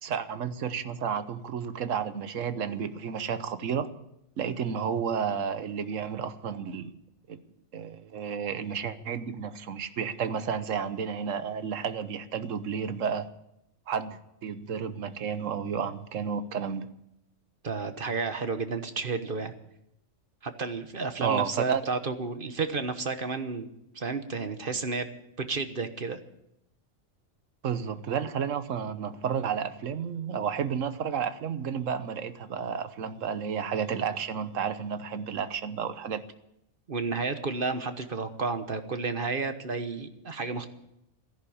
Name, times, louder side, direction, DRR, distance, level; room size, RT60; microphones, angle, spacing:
voice 1, 0.0-3.9 4.4-6.9 7.3-7.4 7.7-13.3 13.9-16.9 21.2-21.8 27.6-36.2, right 7 dB, 75° right, 1.3 m, -31 dB
voice 2, 17.6-19.5 20.4-23.7 23.9-25.1 25.5-26.2 36.9-40.7, right 4 dB, 45° right, 1.3 m, -31 dB
13.5 x 11.5 x 8.6 m
omnidirectional pair, 1.4 m